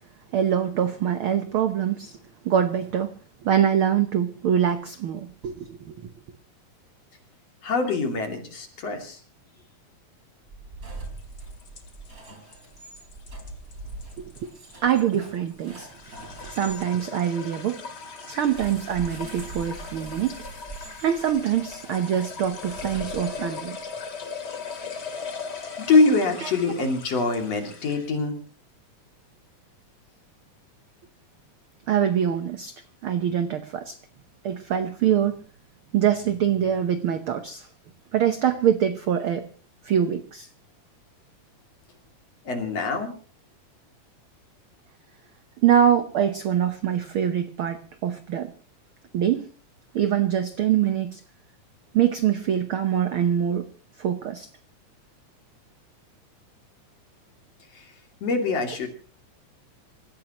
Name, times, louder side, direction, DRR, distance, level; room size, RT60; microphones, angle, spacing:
voice 1, 0.3-2.2 2.4-3.1 3.4-5.9 14.2-14.5 14.8-15.9 16.4-17.8 18.3-20.4 21.0-23.8 26.4-26.5 31.9-34.0 34.4-35.4 35.9-37.7 38.1-39.5 39.8-40.5 45.6-48.5 49.1-49.5 49.9-51.2 51.9-53.7 54.0-54.5, right 9 dB, 65° right, 9 dB, 1.3 m, -24 dB
voice 2, 7.6-9.2 25.8-28.3 42.5-43.1 57.8-57.9 58.2-58.9, left 3 dB, 55° left, 3 dB, 3.7 m, -24 dB
sound 1, 10.4-16.8 18.4-23.7, right 3 dB, 25° right, 4.0 m, -42 dB
sound 2, 11.0-28.2, left 5 dB, 35° left, 2.4 m, -39 dB
27.0 x 15.0 x 3.0 m, 0.38 s
omnidirectional pair, 3.6 m